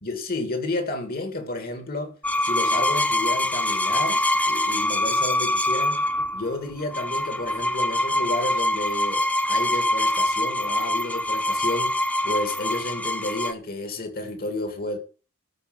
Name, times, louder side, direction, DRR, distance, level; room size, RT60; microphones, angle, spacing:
voice 1, 0.0-6.1 6.3-15.0, left 2 dB, 45° left, 2.3 m, -31 dB
sound 1, 2.2-13.5, left 1 dB, 5° left, 0.7 m, -24 dB
13.5 x 5.1 x 7.9 m
head